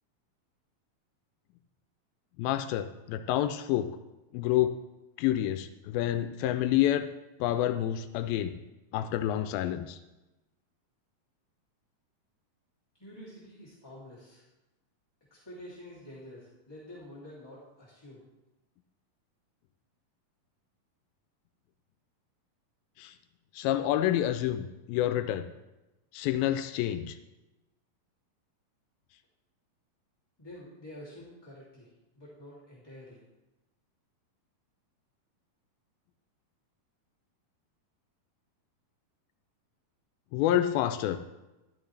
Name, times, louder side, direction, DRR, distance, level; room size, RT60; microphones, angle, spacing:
voice 1, 2.4-3.9 4.3-4.7 5.2-7.1 7.4-8.6 8.9-10.0 23.0-23.1 23.5-25.5 26.1-27.2 40.3-41.2, left 12 dB, 90° left, 9 dB, 2.4 m, -28 dB
voice 2, 13.0-14.4 15.3-18.2 30.4-31.9 32.2-33.2, left 1 dB, 10° left, -9 dB, 2.1 m, -48 dB
13.0 x 12.5 x 3.3 m, 1.0 s
omnidirectional pair, 4.1 m